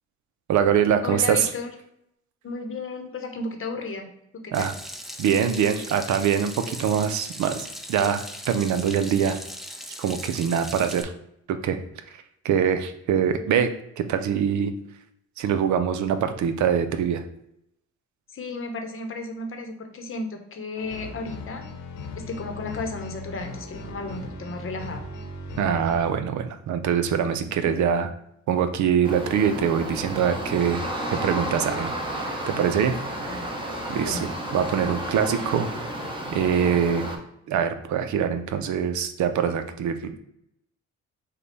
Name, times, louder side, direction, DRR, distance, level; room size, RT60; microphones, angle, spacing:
voice 1, 0.5-1.5 4.5-4.7 5.2-9.4 10.0-11.1 11.5-11.8 12.4-13.7 14.0-14.7 15.4-17.2 25.6-28.1 28.5-30.8 31.1-32.9 33.2-33.5 33.9-34.2 34.5-35.7 36.3-37.0 37.5-40.2, right 8 dB, 70° right, 9 dB, 0.6 m, -24 dB
voice 2, 1.0-1.7 2.4-4.1 4.3-4.7 18.3-21.6 22.2-25.0 27.6-27.8 33.2-33.5 33.9-34.3, left 3 dB, 45° left, 5 dB, 0.9 m, -34 dB
Water tap faucet / Sink (filling or washing), 4.5-11.0, equal, ahead, 0.4 m, -39 dB
sound 1, 20.8-26.1, left 2 dB, 70° left, 1.0 m, -38 dB
sound 2, 29.0-37.2, right 1 dB, 15° right, 1.0 m, -32 dB
5.1 x 2.3 x 4.0 m, 0.77 s
cardioid pair, 90°, 30 cm